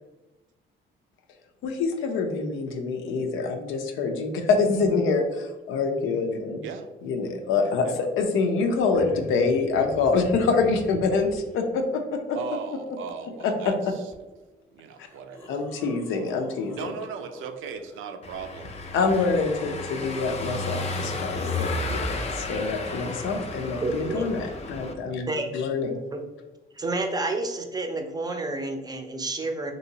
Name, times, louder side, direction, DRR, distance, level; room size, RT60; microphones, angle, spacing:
voice 1, 1.6-6.6 7.0-12.4 13.4-13.9 15.5-16.9 18.9-26.0, left 4 dB, 90° left, 5 dB, 0.5 m, -26 dB
sound 1, 8.5-11.6 14.1-14.2 14.9-18.0 20.5-20.6, right 1 dB, 10° left, 0.8 m, -45 dB
voice 2, 12.3-14.0 14.7-15.5 15.8-16.0 16.7-18.8 24.8-25.0 27.1-27.2, right 6 dB, 80° right, 7 dB, 0.4 m, -37 dB
Car passing by / Engine, 18.2-24.9, left 2 dB, 35° left, 0.4 m, -32 dB
voice 3, 23.8-24.4 25.3-25.5 26.1-26.2 26.7-29.7, right 2 dB, 20° right, 4 dB, 0.5 m, -29 dB
3.0 x 2.7 x 2.7 m, 1.1 s
cardioid pair, 90°, 20 cm